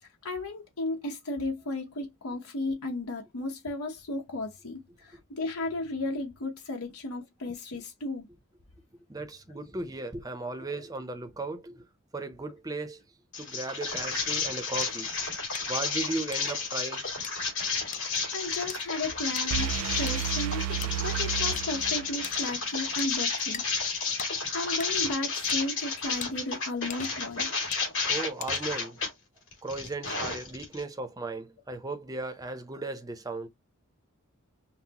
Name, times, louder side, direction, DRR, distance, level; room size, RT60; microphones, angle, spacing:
voice 1, 0.2-8.3 18.3-20.6 21.0-23.6 24.5-27.5, left 2 dB, 85° left, 1.0 m, -34 dB
voice 2, 9.1-11.9 12.1-13.0 13.4-15.1 15.7-17.1 19.9-20.0 24.1-24.2 25.0-25.1 28.1-29.0 29.6-33.5, right 2 dB, 15° right, 0.6 m, -36 dB
sound 1, 13.3-29.1 29.5-30.8, left 4 dB, 60° left, 2.5 m, -31 dB
sound 2, 14.8-14.9 15.5-15.7 16.3-16.6 17.2-17.3 17.9-18.0 18.7-18.8 19.4-19.5 20.1-20.3 20.8-20.9 21.6-21.7 22.2-22.5 23.0-23.1 23.5-23.7 24.2-24.3 24.8-24.9 25.5-25.6 26.2-26.3 26.9-27.3 27.7-27.9 28.4-28.8, left 9 dB, 35° left, 0.4 m, -40 dB
sound 3, 19.5-22.4, right 11 dB, 85° right, 0.4 m, -32 dB
5.7 x 2.0 x 2.9 m
head